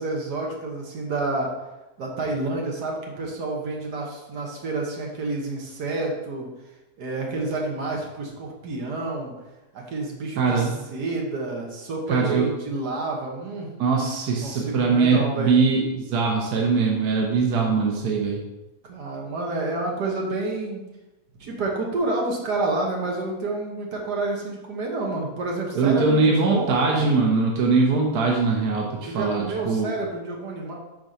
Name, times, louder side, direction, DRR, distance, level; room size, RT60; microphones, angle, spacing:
voice 1, 0.0-1.5 2.0-6.5 7.0-9.3 9.7-13.7 14.0-14.1 14.4-15.6 18.9-20.9 21.4-27.1 29.0-30.7, right 2 dB, 90° right, -1 dB, 1.9 m, -29 dB
voice 2, 10.4-10.7 12.1-12.5 13.8-18.4 25.7-29.9, right 4 dB, 75° right, 0 dB, 1.4 m, -21 dB
5.3 x 4.5 x 5.6 m, 1.0 s
omnidirectional pair, 1.7 m